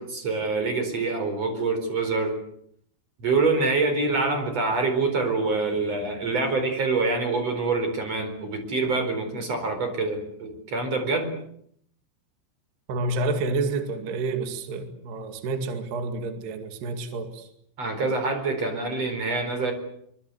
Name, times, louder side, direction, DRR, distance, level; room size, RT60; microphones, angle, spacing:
voice 1, 0.0-2.4 3.2-11.3 17.8-19.7, right 3 dB, 35° right, 6 dB, 5.2 m, -26 dB
voice 2, 12.9-17.5, right 3 dB, 60° right, 7 dB, 4.1 m, -29 dB
24.5 x 24.5 x 8.0 m, 0.69 s
omnidirectional pair, 5.6 m